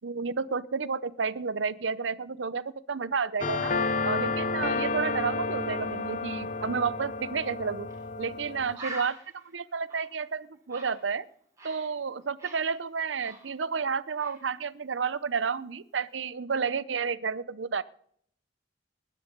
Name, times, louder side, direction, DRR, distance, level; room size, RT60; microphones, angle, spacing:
voice 1, 0.0-3.7 4.0-7.9 8.2-11.3 11.6-17.8, right 5 dB, 85° right, 18 dB, 0.7 m, -31 dB
sound 1, 3.4-8.8, left 3 dB, 45° left, 0.9 m, -31 dB
Bird, 7.9-8.0 8.3-8.4 8.7-11.9 12.2-13.9 14.2-14.5, right 2 dB, 15° right, 4.6 m, -44 dB
20.0 x 10.0 x 5.3 m, 0.64 s
head